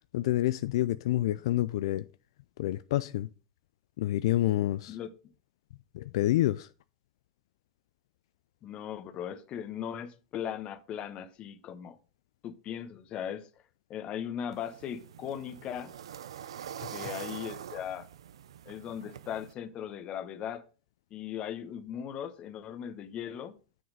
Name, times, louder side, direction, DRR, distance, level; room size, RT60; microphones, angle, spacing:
voice 1, 0.1-2.0 2.6-3.3 4.0-5.0 5.9-6.7 16.8-17.1, left 14 dB, 75° left, 0.4 m, -28 dB
voice 2, 8.6-12.0 12.4-13.5 13.9-15.9 16.9-18.1 18.6-20.6 21.1-23.6, left 9 dB, 40° left, 1.0 m, -38 dB
sound 1, 14.5-19.5, right 9 dB, 90° right, 0.5 m, -44 dB
7.1 x 6.3 x 5.0 m
hypercardioid pair, 115°, 3 cm